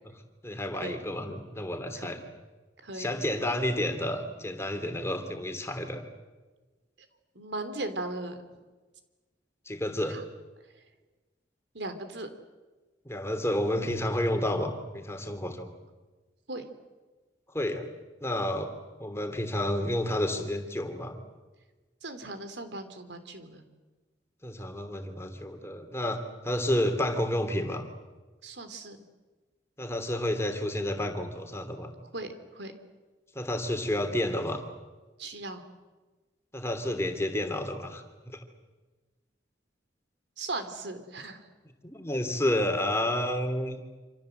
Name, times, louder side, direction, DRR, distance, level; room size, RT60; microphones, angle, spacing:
voice 1, 0.4-2.2 2.9-6.0 9.7-10.2 13.0-15.7 17.5-17.9 18.2-18.7 19.0-21.2 24.4-26.2 26.4-27.8 29.8-31.9 33.3-34.6 36.5-38.4 41.8-43.8, left 1 dB, 15° left, 6 dB, 2.9 m, -30 dB
voice 2, 2.8-3.1 7.3-8.4 10.1-10.2 11.7-12.3 16.5-16.6 22.0-23.6 28.4-29.0 32.1-32.7 35.2-35.6 40.4-41.4, right 2 dB, 80° right, 8 dB, 3.3 m, -37 dB
27.0 x 26.5 x 7.9 m, 1.3 s
head